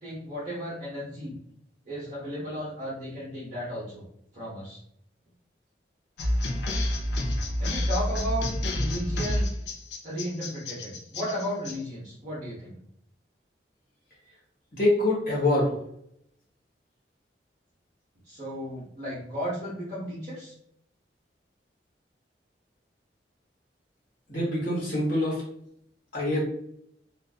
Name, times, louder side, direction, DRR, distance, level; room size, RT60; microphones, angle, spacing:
voice 1, 0.0-1.4 1.9-4.0 4.3-4.8 7.6-9.5 10.0-12.7 18.3-20.5, equal, 45° right, -8 dB, 0.8 m, -34 dB
sound 1, 6.2-11.7, left 1 dB, 70° left, 0.5 m, -29 dB
voice 2, 14.7-15.8 24.3-25.4 26.1-26.4, left 1 dB, 50° left, -5 dB, 1.2 m, -25 dB
2.5 x 2.4 x 2.3 m, 0.71 s
head